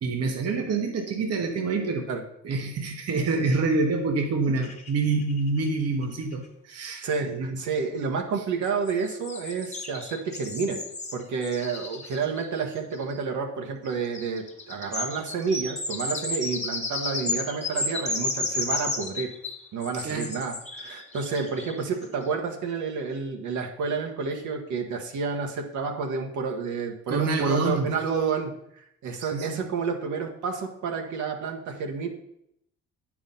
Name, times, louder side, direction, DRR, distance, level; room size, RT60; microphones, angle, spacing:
voice 1, 0.0-2.1 2.4-7.6 19.9-20.3 27.1-28.0 29.2-29.7, right 3 dB, 55° right, 3 dB, 1.1 m, -27 dB
sound 1, 4.6-5.7 6.0-6.1 6.3-6.4 8.6-13.2 13.8-22.1, left 3 dB, 20° left, 1.3 m, -33 dB
voice 2, 7.0-10.8 11.1-19.3 19.7-32.1, right 5 dB, 75° right, 3 dB, 1.3 m, -30 dB
8.8 x 4.9 x 5.4 m, 0.74 s
cardioid pair, 90°, 30 cm